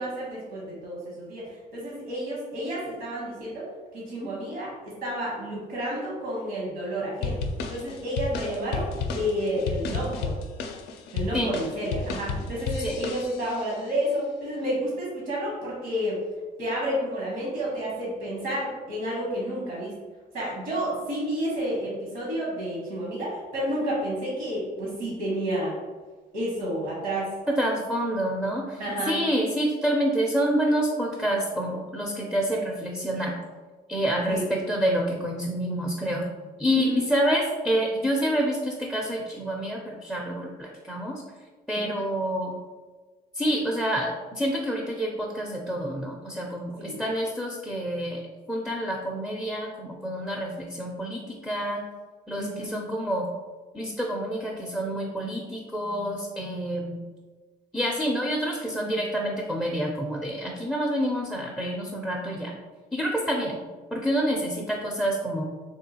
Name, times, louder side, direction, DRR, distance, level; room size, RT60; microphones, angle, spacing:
voice 1, 0.0-1.5 1.7-3.7 3.9-7.4 7.7-10.3 11.1-16.2 16.6-19.9 20.3-25.8 26.3-27.3 28.8-29.2 34.3-34.4 36.7-37.0 41.8-41.9 46.8-47.0 52.4-52.8, equal, 80° right, -5 dB, 1.2 m, -30 dB
sound 1, 7.2-13.7, left 4 dB, 80° left, 0.4 m, -32 dB
voice 2, 27.6-28.8 29.1-33.3 33.9-36.3 36.6-41.2 41.7-42.5 43.3-48.2 48.5-51.8 52.3-53.3 53.7-57.0 57.7-62.5 62.9-63.6 63.9-65.4, equal, ahead, -1 dB, 0.4 m, -27 dB
3.6 x 2.3 x 2.7 m, 1.3 s
cardioid pair, 110°, 17 cm